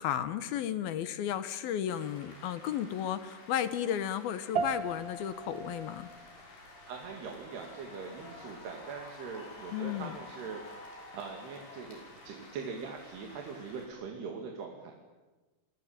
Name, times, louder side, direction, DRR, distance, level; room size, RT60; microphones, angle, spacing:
voice 1, 0.0-6.1 9.7-10.2, left 10 dB, 75° left, 12 dB, 2.9 m, -33 dB
sound 1, 1.9-13.9, left 2 dB, 90° left, 8.1 m, -51 dB
sound 2, 4.5-14.1, right 5 dB, 65° right, 1.1 m, -42 dB
voice 2, 6.9-10.6 11.1-14.9, right 5 dB, 85° right, 2 dB, 4.6 m, -42 dB
28.5 x 23.0 x 9.0 m, 1.2 s
omnidirectional pair, 4.6 m